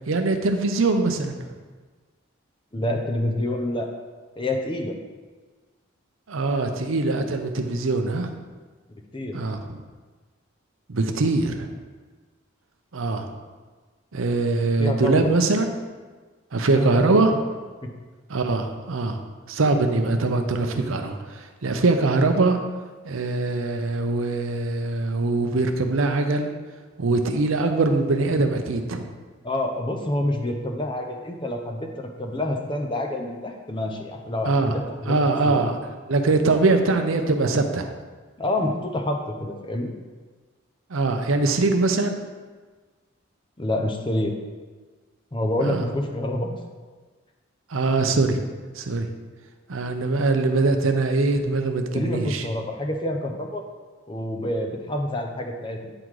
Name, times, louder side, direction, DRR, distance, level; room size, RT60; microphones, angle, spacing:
voice 1, 0.1-1.5 6.3-8.4 9.3-9.8 10.9-11.7 12.9-13.3 14.1-15.7 16.5-17.3 18.3-19.2 19.5-21.2 21.6-22.6 23.0-26.5 27.0-29.1 34.4-34.7 35.1-35.8 36.1-37.9 40.9-42.2 45.6-45.8 47.7-48.5 48.8-49.1 49.7-52.4, right 3 dB, 80° right, 6 dB, 0.7 m, -22 dB
voice 2, 2.7-3.9 4.4-4.9 9.1-9.4 14.8-15.4 16.7-17.4 17.8-17.9 29.4-31.9 32.2-35.6 38.4-39.9 43.6-44.3 45.3-46.6 51.9-53.6 54.1-55.9, left 1 dB, 25° left, 3 dB, 0.6 m, -27 dB
8.7 x 3.9 x 4.7 m, 1.4 s
head